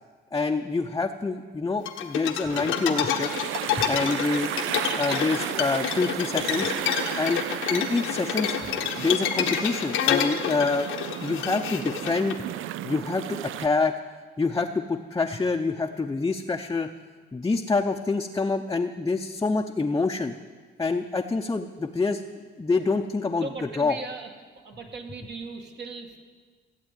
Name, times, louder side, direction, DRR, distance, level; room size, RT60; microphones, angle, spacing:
voice 1, 0.3-3.3 3.9-4.5 5.0-6.7 7.2-7.4 7.7-8.5 9.0-10.9 11.2-12.4 12.8-13.9 14.4-16.9 17.3-20.3 20.8-22.2 22.6-23.5 23.8-24.0, left 3 dB, 15° left, 3 dB, 0.7 m, -26 dB
sound 1, 1.9-12.3, left 9 dB, 90° left, 1.2 m, -28 dB
sound 2, 2.5-13.7, right 13 dB, 85° right, 0.5 m, -34 dB
voice 2, 4.9-5.4 8.4-8.5 12.0-12.1 23.4-24.3 24.5-26.2, right 4 dB, 60° right, 2 dB, 2.1 m, -38 dB
15.5 x 8.2 x 9.0 m, 1.5 s
cardioid pair, 90°, 20 cm